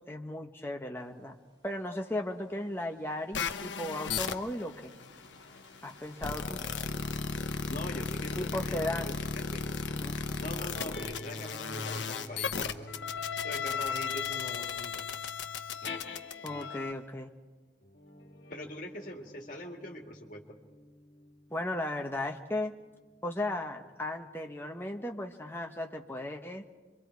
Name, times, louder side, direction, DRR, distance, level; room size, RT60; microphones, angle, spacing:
voice 1, 0.1-1.4 1.6-4.9 5.8-6.6 8.4-9.2 9.9-10.2 16.4-17.3 21.5-22.7 23.2-26.6, left 1 dB, 10° left, 2 dB, 1.1 m, -36 dB
sound 1, 1.0-15.1, right 3 dB, 25° right, 4.1 m, -62 dB
sound 2, 3.3-16.9, left 5 dB, 90° left, 0.9 m, -36 dB
voice 2, 7.7-9.7 10.4-13.0 13.4-15.0 18.5-20.6, left 1 dB, 45° left, 2 dB, 2.2 m, -43 dB
sound 3, 10.7-17.1 17.8-22.7, left 2 dB, 65° left, 1.7 m, -48 dB
25.5 x 23.5 x 4.7 m, 1.3 s
head